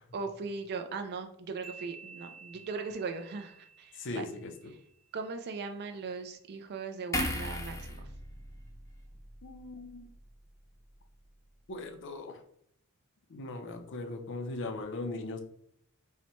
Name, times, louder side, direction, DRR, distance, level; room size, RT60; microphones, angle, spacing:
voice 1, 0.1-4.3 5.1-7.9, right 4 dB, 50° right, 6 dB, 0.4 m, -39 dB
sound 1, 1.6-5.2, right 5 dB, 85° right, 0.7 m, -52 dB
voice 2, 4.0-4.7 9.4-10.1 11.7-12.4 13.3-15.4, left 2 dB, 55° left, 6 dB, 0.6 m, -39 dB
sound 2, 7.1-10.5 10.8-11.0, left 1 dB, 15° left, 0.6 m, -38 dB
5.5 x 2.2 x 3.0 m, 0.68 s
head